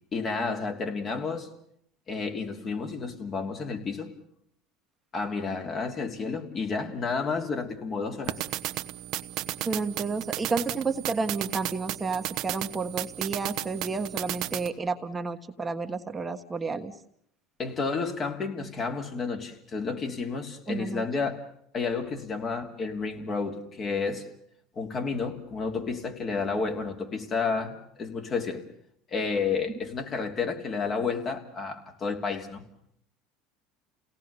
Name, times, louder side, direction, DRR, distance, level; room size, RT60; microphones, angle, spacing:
voice 1, 0.1-1.5 2.1-4.1 5.1-8.4 17.6-21.4 21.7-24.2 24.7-28.6 29.1-32.6, left 4 dB, 40° left, 4 dB, 3.1 m, -31 dB
sound 1, 8.2-14.7, right 15 dB, 60° right, 1.0 m, -34 dB
voice 2, 9.6-17.0 20.7-21.0, right 4 dB, 20° right, 6 dB, 1.4 m, -31 dB
28.5 x 18.0 x 7.0 m, 0.69 s
supercardioid pair, 95°, 0 cm